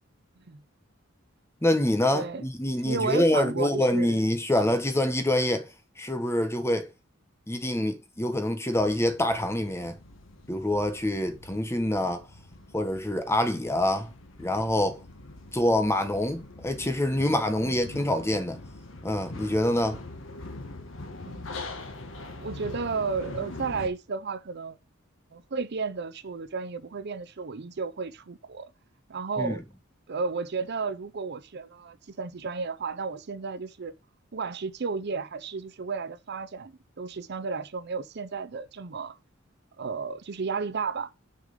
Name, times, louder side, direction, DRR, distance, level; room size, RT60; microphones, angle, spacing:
voice 1, 1.6-5.7 6.0-6.9 7.5-10.0 10.5-12.2 12.7-14.1 14.4-15.0 15.5-18.6 19.0-20.0 29.4-29.6, left 1 dB, 15° left, 1.3 m, -26 dB
voice 2, 2.1-2.4 2.8-4.2 17.6-17.7 21.2-21.7 22.4-24.8 25.3-28.7 29.1-29.6 30.1-33.9 34.3-39.2 39.8-41.1, right 4 dB, 55° right, 0.6 m, -33 dB
sound 1, 8.8-23.9, left 2 dB, 70° left, 1.5 m, -43 dB
6.8 x 4.9 x 5.1 m
head